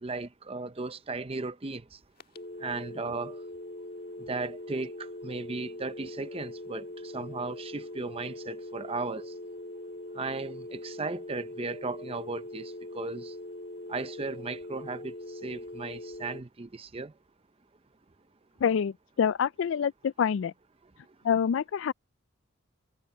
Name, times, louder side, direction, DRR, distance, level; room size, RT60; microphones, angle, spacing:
voice 1, 0.0-1.8 2.6-3.4 4.3-4.9 5.2-6.8 7.1-9.3 10.2-13.3 13.9-15.1 15.4-17.1, right 3 dB, 30° right, 0.6 m, -36 dB
sound 1, 2.2-16.4, left 1 dB, 50° left, 1.6 m, -42 dB
voice 2, 18.6-20.5 21.2-21.9, left 7 dB, 70° left, 0.3 m, -26 dB
head